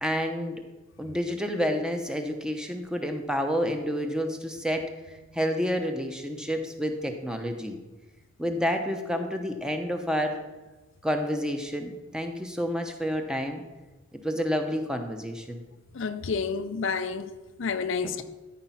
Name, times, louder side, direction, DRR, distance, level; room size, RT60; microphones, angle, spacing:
voice 1, 0.0-0.6 1.0-7.8 8.4-10.4 11.0-13.6 14.2-15.6 18.0-18.2, equal, 5° right, 0.8 m, -29 dB
voice 2, 16.0-17.3 17.6-18.2, left 5 dB, 60° left, 0.5 m, -29 dB
13.5 x 5.0 x 5.7 m
head